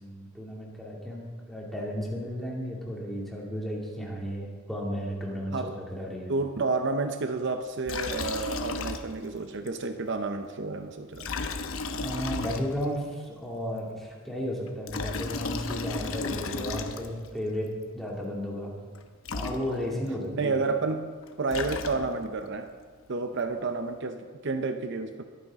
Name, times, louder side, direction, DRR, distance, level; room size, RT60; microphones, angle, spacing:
voice 1, 0.0-6.3 12.0-18.8 19.3-20.5, equal, ahead, -3 dB, 2.4 m, -34 dB
voice 2, 6.3-11.3 20.3-22.7 23.1-25.2, right 3 dB, 60° right, 7 dB, 0.7 m, -30 dB
Liquid, 7.9-9.4 9.7-9.8 11.1-13.0 14.7-17.3 19.0-19.1 19.2-20.1 21.2-22.4, left 3 dB, 75° left, 0.9 m, -34 dB
21.5 x 9.3 x 3.6 m, 1.5 s
head